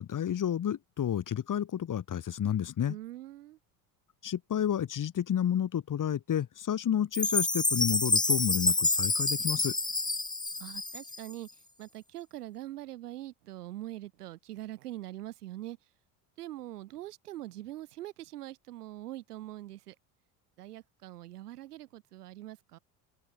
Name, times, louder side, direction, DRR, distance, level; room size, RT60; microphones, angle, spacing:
voice 1, 0.0-3.0 4.2-9.7, left 9 dB, 45° left, 7.3 m, -30 dB
voice 2, 2.9-3.6 10.6-11.5 11.8-15.8 16.4-19.9 20.6-22.8, right 15 dB, 85° right, 5.8 m, -43 dB
Chime, 7.1-11.3, left 2 dB, 10° left, 1.6 m, -28 dB
open air
hypercardioid pair, 80°, 45 cm